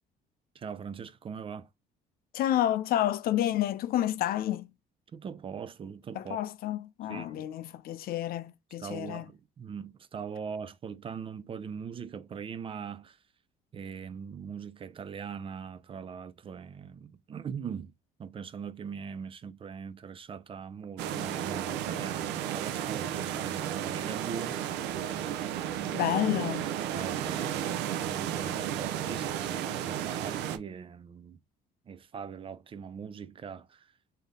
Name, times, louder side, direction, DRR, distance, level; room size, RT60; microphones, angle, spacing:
voice 1, 0.5-1.7 5.1-6.4 7.1-7.5 8.8-13.2 13.7-17.9 18.2-24.7 26.9-31.4 31.9-33.9, right 6 dB, 30° right, 0.4 m, -41 dB
voice 2, 2.3-4.7 6.1-9.3 25.9-26.7, left 12 dB, 60° left, 0.5 m, -29 dB
sound 1, 21.0-30.6, right 10 dB, 90° right, 0.5 m, -33 dB
3.3 x 2.8 x 3.6 m
cardioid pair, 110°, 17 cm